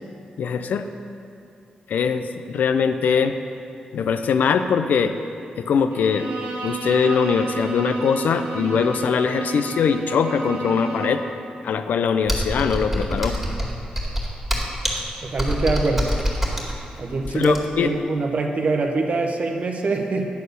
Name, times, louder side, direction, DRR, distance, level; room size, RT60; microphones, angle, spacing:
voice 1, 0.4-0.9 1.9-3.4 3.9-5.1 5.6-6.3 6.6-11.2 11.6-13.4 17.3-17.9, left 6 dB, 75° left, 9 dB, 0.4 m, -21 dB
Bowed string instrument, 5.9-11.4, right 3 dB, 85° right, 1.1 m, -31 dB
Computer keyboard, 12.3-17.9, equal, 5° right, 2.2 m, -25 dB
voice 2, 15.2-16.2 17.0-20.3, right 3 dB, 55° right, 3 dB, 0.8 m, -24 dB
9.3 x 4.3 x 6.7 m, 2.6 s
cardioid pair, 65°, 3 cm